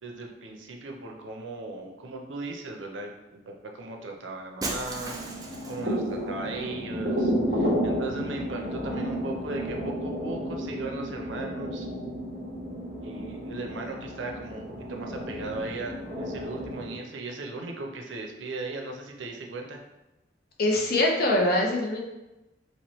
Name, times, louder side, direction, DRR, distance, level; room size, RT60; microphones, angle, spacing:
voice 1, 0.0-5.1 5.7-11.9 13.0-19.8, right 3 dB, 85° right, 2 dB, 0.5 m, -37 dB
Shatter, 4.6-6.0, right 2 dB, 20° right, 0.4 m, -35 dB
sound 1, 4.9-16.9, equal, 35° right, 1.1 m, -32 dB
voice 2, 20.6-22.0, left 1 dB, 55° left, 0 dB, 0.6 m, -23 dB
3.0 x 3.0 x 3.0 m, 1.0 s
head